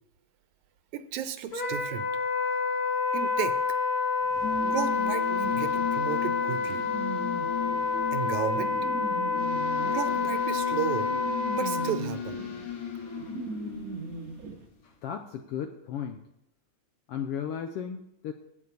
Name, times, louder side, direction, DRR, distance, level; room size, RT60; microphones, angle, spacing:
voice 1, 0.9-2.1 3.1-3.6 4.6-6.9 8.1-8.7 9.8-11.1 11.5-12.4, right 10 dB, 90° right, 11 dB, 2.2 m, -33 dB
Wind instrument woodwind instrument, 1.5-11.9, left 5 dB, 35° left, 1.9 m, -28 dB
sound 1, 4.2-14.7, left 6 dB, 55° left, 3.1 m, -36 dB
sound 2, 5.4-14.5, right 4 dB, 75° right, 0.8 m, -40 dB
voice 2, 14.8-16.2 17.1-18.3, left 8 dB, 80° left, 7 dB, 1.4 m, -35 dB
11.0 x 5.9 x 8.3 m, 0.80 s
omnidirectional pair, 3.3 m